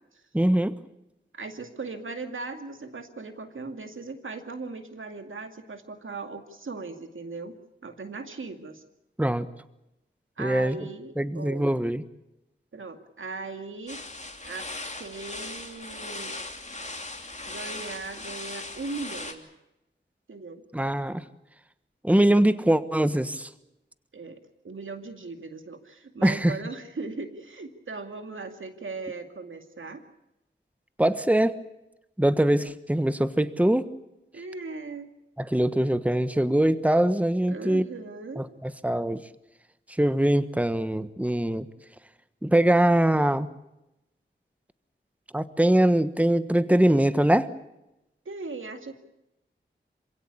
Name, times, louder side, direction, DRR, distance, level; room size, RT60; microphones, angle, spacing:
voice 1, 0.3-0.7 9.2-9.5 10.4-10.8 11.2-12.0 20.7-21.2 22.0-23.5 26.2-26.6 31.0-31.6 32.2-33.9 35.4-37.8 38.4-39.2 40.0-41.7 42.4-43.5 45.3-47.5, right 1 dB, 5° right, 12 dB, 1.3 m, -22 dB
voice 2, 1.3-7.5 7.8-8.8 10.4-11.8 12.7-14.0 14.4-14.7 15.0-16.3 17.4-19.5 20.3-20.6 24.1-30.0 34.3-35.1 37.5-38.4 48.3-49.0, right 3 dB, 90° right, 6 dB, 2.3 m, -38 dB
sound 1, 13.9-19.3, left 2 dB, 35° left, 3.0 m, -38 dB
27.0 x 17.0 x 8.6 m, 0.91 s
wide cardioid pair, 55°, 20 cm